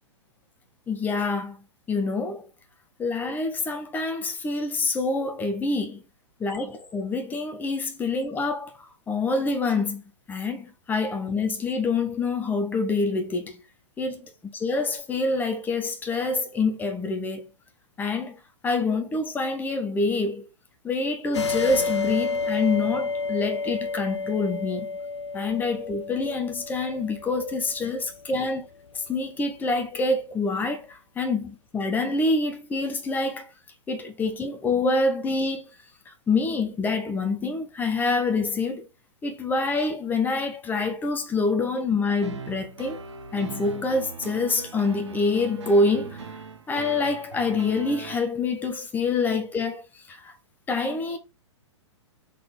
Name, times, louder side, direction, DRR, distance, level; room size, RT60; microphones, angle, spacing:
voice 1, 0.9-1.6 1.9-2.4 3.0-6.0 6.4-8.7 9.1-10.0 10.3-13.6 14.0-14.2 14.6-17.5 18.0-18.4 18.6-20.4 20.8-24.9 25.3-28.7 29.1-33.5 33.9-35.7 36.3-38.8 39.2-43.0 43.3-46.2 46.7-49.8 50.1-50.3 50.7-51.2, left 3 dB, 10° left, 0.8 m, -26 dB
sound 1, 21.3-28.5, left 4 dB, 65° left, 0.5 m, -30 dB
sound 2, 42.2-48.2, right 5 dB, 70° right, 0.8 m, -40 dB
3.9 x 3.8 x 3.4 m
figure-of-eight pair, 115°, 16 cm